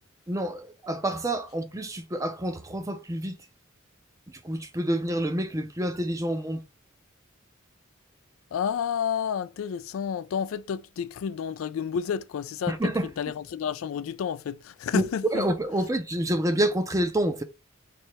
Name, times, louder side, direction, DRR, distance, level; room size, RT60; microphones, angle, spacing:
voice 1, 0.3-3.4 4.4-6.6 12.7-13.1 14.9-15.0 15.3-17.4, right 1 dB, 15° right, 0.5 m, -28 dB
voice 2, 8.5-15.5, left 7 dB, 80° left, 0.3 m, -30 dB
3.3 x 2.8 x 4.3 m
head